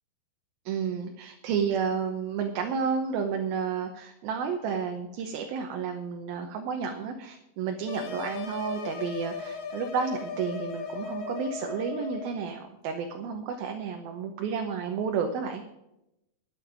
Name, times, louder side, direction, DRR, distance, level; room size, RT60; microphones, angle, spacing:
voice 1, 0.7-15.6, right 6 dB, 70° right, 4 dB, 2.6 m, -31 dB
sound 1, 7.9-12.3, left 5 dB, 60° left, 1.7 m, -37 dB
12.0 x 7.2 x 8.8 m, 0.87 s
omnidirectional pair, 4.8 m